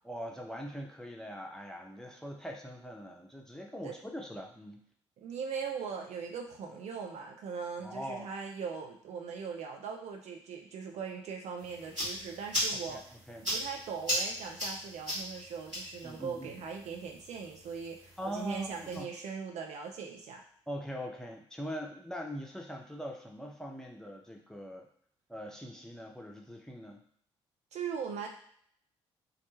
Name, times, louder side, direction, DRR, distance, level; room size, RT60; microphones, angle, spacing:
voice 1, 0.0-4.8 7.8-8.3 12.9-13.0 13.3-13.5 16.0-16.6 18.2-19.1 20.7-24.9 25.3-27.0, equal, 5° left, 0 dB, 0.5 m, -42 dB
voice 2, 5.2-20.4 27.7-28.3, right 6 dB, 50° right, 2 dB, 0.4 m, -40 dB
sound 1, 11.6-19.0, equal, 85° right, 0.9 m, -38 dB
2.3 x 2.1 x 3.1 m, 0.63 s
figure-of-eight pair, 40°, 15 cm